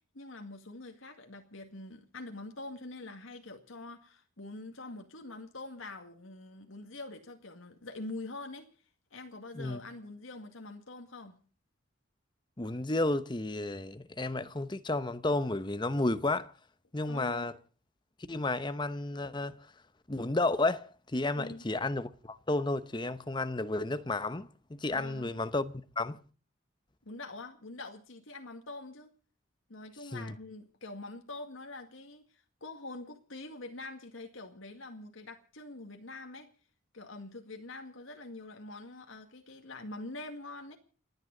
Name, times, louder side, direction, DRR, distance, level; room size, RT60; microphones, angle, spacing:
voice 1, 0.1-8.7 9.1-11.4 17.1-17.6 21.4-21.6 24.9-25.4 27.1-29.1 29.7-36.5 36.9-40.8, left 2 dB, 85° left, 2.0 m, -45 dB
voice 2, 12.6-16.5 16.9-17.5 18.3-19.6 20.1-26.2 30.1-30.3, left 2 dB, 25° left, 0.9 m, -32 dB
29.5 x 9.8 x 3.9 m
head